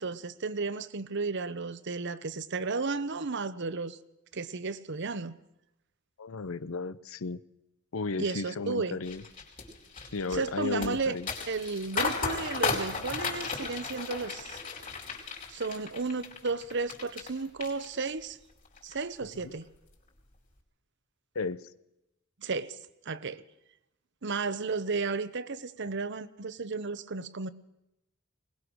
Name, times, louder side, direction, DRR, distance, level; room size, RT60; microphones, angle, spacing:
voice 1, 0.0-4.0 4.3-5.4 8.2-9.0 10.3-11.2 11.5-14.6 15.5-18.4 18.8-19.7 22.4-22.8 23.1-23.4 24.2-27.5, right 4 dB, 60° right, 0.9 m, -33 dB
voice 2, 6.2-7.4 7.9-9.2 10.1-11.3 19.4-19.5 21.3-21.7, left 4 dB, 80° left, 0.7 m, -34 dB
sound 1, 9.0-17.3 17.6-18.3 18.7-18.9, left 4 dB, 40° left, 4.5 m, -35 dB
21.0 x 20.0 x 6.3 m
head